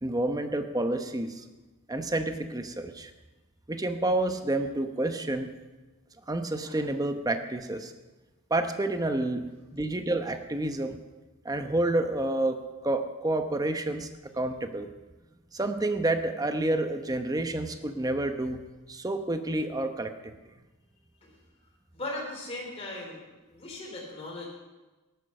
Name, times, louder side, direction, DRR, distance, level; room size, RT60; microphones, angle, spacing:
voice 1, 0.0-1.4 1.9-3.1 3.7-5.5 6.3-7.9 8.5-11.0 11.4-14.1 14.3-14.9 15.5-20.3, right 2 dB, 15° right, 7 dB, 0.9 m, -29 dB
voice 2, 21.9-23.2 23.5-24.4, left 2 dB, 30° left, -3 dB, 3.4 m, -38 dB
14.5 x 11.5 x 6.6 m, 1.2 s
head